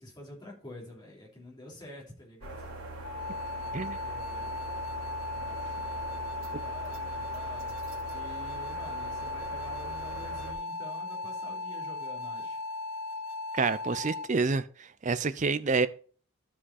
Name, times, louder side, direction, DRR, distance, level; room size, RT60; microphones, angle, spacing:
voice 1, 0.0-2.7 3.5-4.5 5.3-5.6 6.3-7.7 8.1-12.6, left 1 dB, 20° left, 3.0 m, -48 dB
sound 1, 2.4-10.5, right 2 dB, 80° right, 2.2 m, -41 dB
sound 2, 3.0-14.3, left 3 dB, 85° left, 0.6 m, -37 dB
voice 2, 13.5-15.9, right 4 dB, 35° right, 0.5 m, -28 dB
13.0 x 4.9 x 4.1 m
head